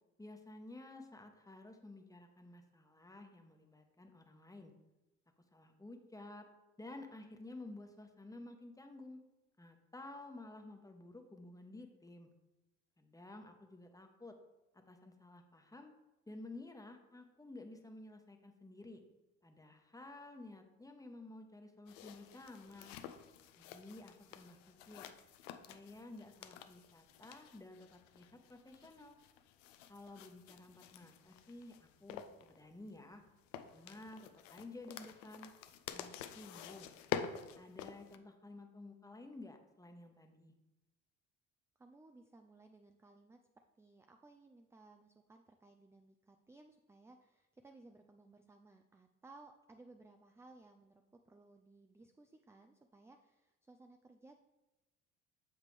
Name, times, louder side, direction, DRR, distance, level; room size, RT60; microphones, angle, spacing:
voice 1, 0.2-4.7 5.5-6.5 6.8-9.2 9.6-12.3 13.0-14.4 14.7-15.9 16.3-19.0 19.4-23.0 23.6-25.1 25.7-29.2 29.9-33.2 33.7-35.5 35.9-36.9 37.5-40.5, left 2 dB, 10° left, 4 dB, 1.0 m, -53 dB
sound 1, 21.9-38.2, left 9 dB, 75° left, 0.6 m, -49 dB
voice 2, 41.8-54.4, right 2 dB, 5° right, 5 dB, 0.4 m, -61 dB
7.3 x 5.3 x 3.3 m, 1.0 s
hypercardioid pair, 55°, 38 cm